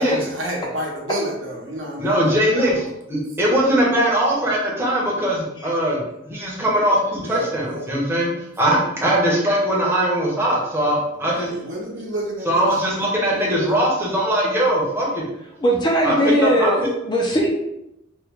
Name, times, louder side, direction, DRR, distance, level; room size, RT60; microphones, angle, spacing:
voice 1, 0.0-2.9 3.3-3.4 7.2-7.9 11.1-13.9, equal, 65° right, -2 dB, 0.8 m, -31 dB
voice 2, 2.0-6.0 6.2-8.3 8.6-11.5 12.5-15.2 16.0-16.1 16.4-16.7, right 1 dB, 10° right, -4 dB, 0.8 m, -20 dB
voice 3, 5.6-6.0 10.8-10.9 15.6-17.5, right 1 dB, 20° left, -1 dB, 0.4 m, -20 dB
3.0 x 2.1 x 3.5 m, 0.85 s
head